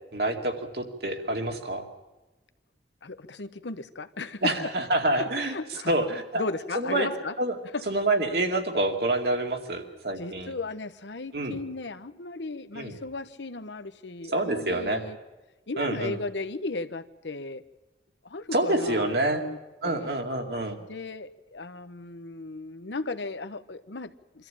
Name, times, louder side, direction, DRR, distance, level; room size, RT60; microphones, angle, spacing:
voice 1, 0.1-1.8 4.4-5.5 5.9-6.4 6.7-7.1 7.4-7.6 7.9-10.5 11.3-11.6 12.7-13.0 14.3-15.0 15.8-16.2 18.5-19.4 19.8-20.8, right 2 dB, 60° right, 3 dB, 2.4 m, -27 dB
voice 2, 3.0-4.7 5.2-7.4 7.7-7.8 10.2-15.2 15.7-17.6 18.2-20.2 20.8-24.5, left 3 dB, 85° left, 10 dB, 1.0 m, -36 dB
24.0 x 14.0 x 8.9 m, 1.1 s
head